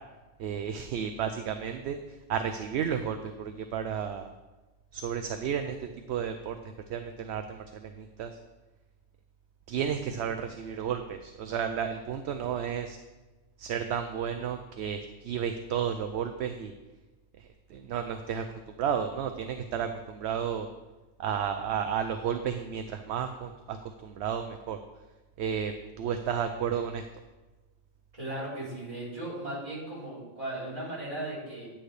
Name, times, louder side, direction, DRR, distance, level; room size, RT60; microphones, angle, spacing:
voice 1, 0.4-2.0 2.3-4.3 4.9-5.8 6.1-6.6 6.9-8.3 9.7-13.0 13.6-15.0 15.2-16.7 17.7-18.4 18.8-20.7 21.2-23.8 24.0-24.8 25.4-25.7 26.0-27.0, right 8 dB, 70° right, 7 dB, 0.8 m, -32 dB
voice 2, 28.1-31.7, right 1 dB, 30° right, -8 dB, 3.5 m, -37 dB
9.6 x 8.8 x 3.3 m, 1.2 s
omnidirectional pair, 1.2 m